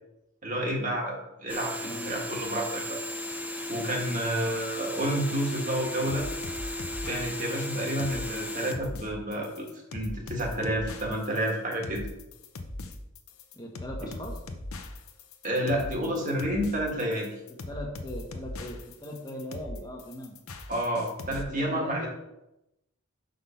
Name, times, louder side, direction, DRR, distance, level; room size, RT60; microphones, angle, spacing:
voice 1, 0.4-3.0 3.7-6.3 7.0-12.1 15.4-17.3 20.7-22.1, right 1 dB, 35° right, 0 dB, 1.6 m, -30 dB
sound 1, 1.5-8.7, left 1 dB, 5° right, 0.5 m, -35 dB
voice 2, 1.7-2.2 13.5-14.3 17.7-20.3 21.5-22.1, equal, 20° left, 0 dB, 1.3 m, -39 dB
sound 2, 6.1-21.4, left 2 dB, 75° left, 0.8 m, -40 dB
5.9 x 5.3 x 5.7 m, 0.89 s
head